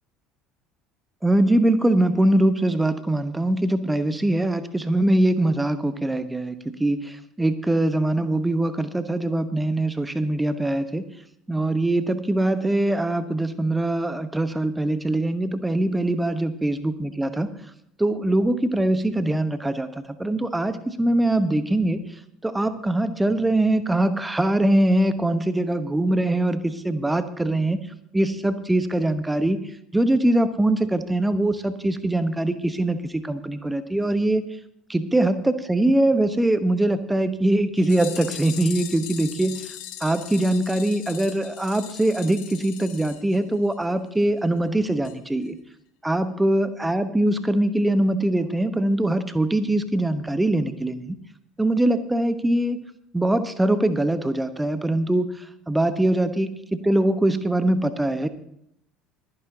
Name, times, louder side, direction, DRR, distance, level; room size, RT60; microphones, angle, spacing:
voice 1, 1.2-11.0 11.5-17.5 18.0-22.0 22.4-27.8 28.1-29.6 29.9-34.4 34.9-39.7 40.0-45.6 46.0-51.2 51.6-52.8 53.1-58.3, right 1 dB, 10° right, 12 dB, 1.1 m, -22 dB
sound 1, 37.8-43.9 44.2-44.3 44.6-44.7 45.0-45.2 45.4-45.5, left 12 dB, 60° left, 1.4 m, -40 dB
25.0 x 9.8 x 2.8 m, 0.74 s
figure-of-eight pair, 65°, 0 cm